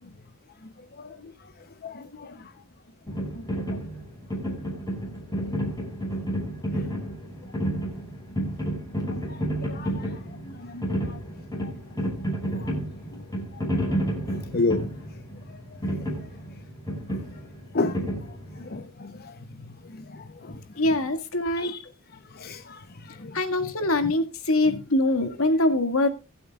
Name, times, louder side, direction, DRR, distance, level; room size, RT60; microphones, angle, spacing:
voice 1, 1.0-1.3 1.8-2.5 3.3-3.8 9.1-10.2 10.4-11.2 11.6-11.7 12.5-12.8 13.1-13.2 13.5-14.0 14.3-14.9 15.7-16.0 17.7-18.0 18.5-20.6 21.6-21.8 22.3-23.4, left 3 dB, 45° left, 0.8 m, -33 dB
sound 1, 3.1-18.8, right 1 dB, 20° left, 6.0 m, -31 dB
voice 2, 20.8-21.7 23.3-26.1, left 2 dB, 70° left, 2.1 m, -23 dB
22.5 x 8.8 x 2.4 m
head